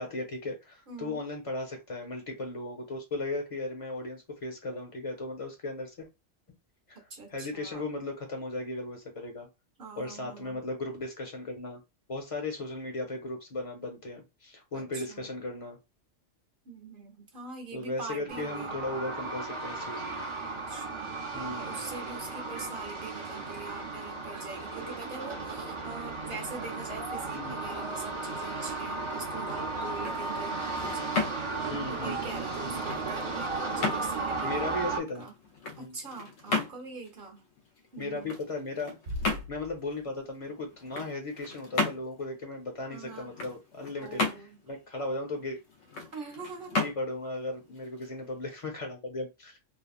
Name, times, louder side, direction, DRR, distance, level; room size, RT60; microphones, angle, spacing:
voice 1, 0.0-6.1 6.9-7.0 7.3-9.5 10.0-11.8 12.1-15.8 17.7-20.0 21.3-21.8 27.3-27.6 31.7-32.2 32.6-32.8 34.4-35.3 35.8-36.0 38.0-39.0 39.5-45.6 46.8-49.6, left 2 dB, 30° left, 0.9 m, -36 dB
voice 2, 0.9-1.2 6.9-7.9 9.8-10.7 14.7-15.4 16.6-18.8 20.7-31.4 31.9-35.3 35.8-37.5 37.9-38.3 42.9-43.4 44.0-44.6 46.1-46.8, right 4 dB, 50° right, 1.0 m, -43 dB
sound 1, 18.3-35.0, right 3 dB, 30° right, 0.7 m, -35 dB
sound 2, 29.8-48.7, left 3 dB, 80° left, 1.1 m, -36 dB
sound 3, 39.1-40.5, left 1 dB, 75° right, 1.1 m, -40 dB
3.4 x 2.3 x 2.3 m
omnidirectional pair, 1.3 m